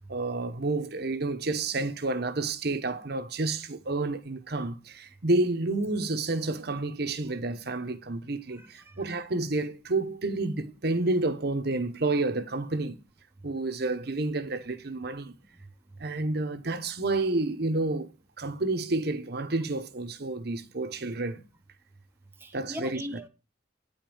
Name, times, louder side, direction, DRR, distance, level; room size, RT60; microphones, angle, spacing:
voice 1, 0.1-13.0 13.4-15.3 16.0-18.1 18.4-21.4 22.5-23.0, right 2 dB, 60° right, 1.1 m, -30 dB
voice 2, 8.6-8.9 22.4-23.3, equal, 10° right, 0.9 m, -40 dB
9.5 x 5.3 x 7.7 m
head